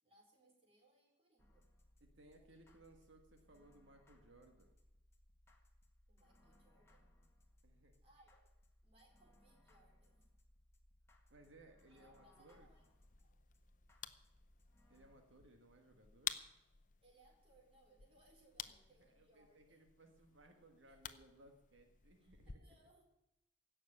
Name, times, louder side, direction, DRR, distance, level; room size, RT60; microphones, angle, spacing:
voice 1, 0.0-1.7 2.4-3.1 6.1-7.1 8.0-8.5 8.8-10.2 11.9-12.8 13.2-13.4 17.0-19.9 20.9-21.0 22.2-23.1, right 1 dB, 30° right, 0 dB, 4.0 m, -70 dB
sound 1, 1.4-15.2, left 1 dB, 15° left, 1.7 m, -69 dB
voice 2, 2.0-4.7 7.6-7.9 11.3-12.7 14.9-16.4 19.0-22.6, right 2 dB, 80° right, 4 dB, 1.6 m, -64 dB
sound 2, 12.5-22.6, left 9 dB, 40° left, 0.7 m, -52 dB
16.5 x 6.7 x 9.7 m, 0.87 s
head